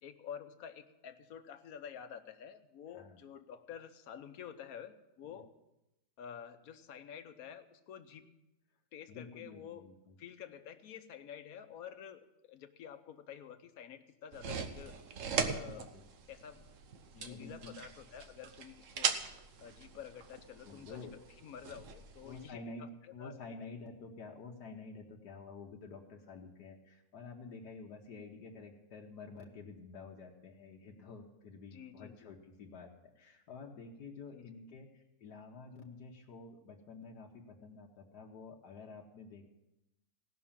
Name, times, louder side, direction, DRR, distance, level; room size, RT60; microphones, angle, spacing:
voice 1, 0.0-5.5 6.2-8.3 8.9-9.8 10.2-15.0 15.5-15.9 16.3-16.6 17.2-19.2 19.6-21.0 21.4-23.4 31.7-32.3 34.3-34.5, left 8 dB, 65° left, 9 dB, 1.3 m, -49 dB
voice 2, 9.1-10.2 15.9-16.0 17.1-17.7 20.6-21.2 22.2-39.4, left 4 dB, 85° left, 0 dB, 1.7 m, -50 dB
sound 1, 14.3-22.5, right 6 dB, 55° right, 1.1 m, -40 dB
17.0 x 6.1 x 7.2 m, 0.92 s
omnidirectional pair, 1.7 m